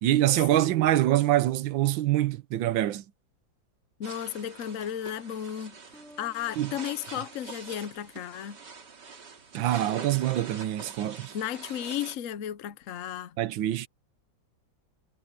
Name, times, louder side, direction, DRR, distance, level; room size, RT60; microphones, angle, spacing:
voice 1, 0.0-3.0 6.6-6.7 9.5-11.3 13.4-13.9, right 14 dB, 80° right, 1.5 m, -25 dB
voice 2, 4.0-5.8 6.2-8.6 11.3-13.4, left 10 dB, 60° left, 0.8 m, -34 dB
sound 1, 4.0-12.2, right 5 dB, 60° right, 2.9 m, -45 dB
Bass guitar, 5.9-8.9, equal, ahead, 1.6 m, -57 dB
omnidirectional pair, 2.1 m